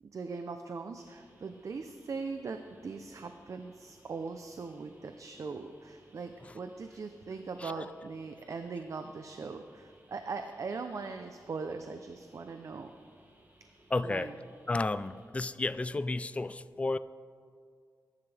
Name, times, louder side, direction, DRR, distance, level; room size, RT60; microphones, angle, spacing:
voice 1, 0.1-12.9 14.0-14.3, right 4 dB, 55° right, 7 dB, 0.6 m, -40 dB
sound 1, 1.0-15.3, right 1 dB, 30° right, 1.8 m, -63 dB
voice 2, 13.9-14.3 14.7-17.0, left 2 dB, 20° left, 14 dB, 0.3 m, -32 dB
20.0 x 10.5 x 3.4 m, 2.1 s
wide cardioid pair, 175°, 7 cm